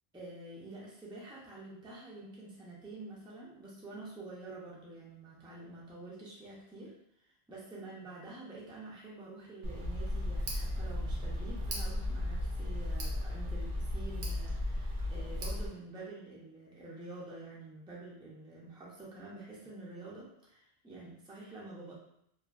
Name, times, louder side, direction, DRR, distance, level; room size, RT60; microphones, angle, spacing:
voice 1, 0.1-6.9 7.2-21.9, right 2 dB, 5° right, -5 dB, 0.5 m, -48 dB
Tick, 9.6-15.7, left 1 dB, 80° right, 1.0 m, -35 dB
2.9 x 2.4 x 2.4 m, 0.74 s
omnidirectional pair, 1.0 m